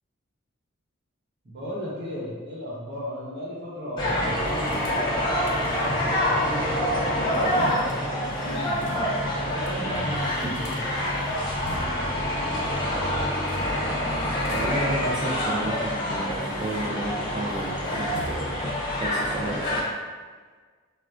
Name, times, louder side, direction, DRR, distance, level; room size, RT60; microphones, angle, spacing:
voice 1, 1.4-5.3 6.1-8.9 9.2-10.8, equal, 55° right, -6 dB, 0.9 m, -35 dB
sound 1, 4.0-19.8, equal, 20° left, 0.8 m, -26 dB
sound 2, 4.4-6.1 7.3-9.3 9.7-9.8 10.0-12.2 13.3-15.1 15.8-17.1 17.4-18.8, left 1 dB, 55° left, 0.5 m, -44 dB
voice 2, 14.5-18.5 19.0-19.9, right 1 dB, 25° right, -6 dB, 0.3 m, -32 dB
4.3 x 2.1 x 2.4 m, 1.5 s
head